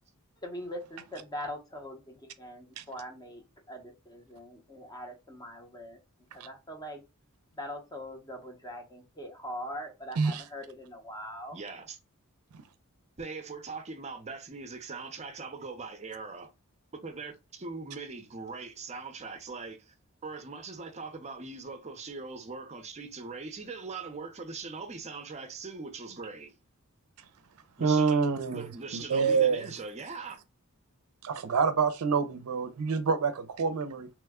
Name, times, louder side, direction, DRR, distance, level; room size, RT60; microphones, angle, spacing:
voice 1, 0.4-6.0 6.3-7.0 7.6-11.6, equal, 20° left, 0.7 m, -42 dB
voice 2, 11.5-12.0 13.2-16.5 17.0-19.9 20.2-26.6 27.8-28.2 28.5-30.4, right 4 dB, 30° right, 0.5 m, -41 dB
voice 3, 27.8-28.7 28.9-29.7 31.2-34.1, right 5 dB, 80° right, 0.4 m, -27 dB
3.0 x 2.1 x 3.5 m
head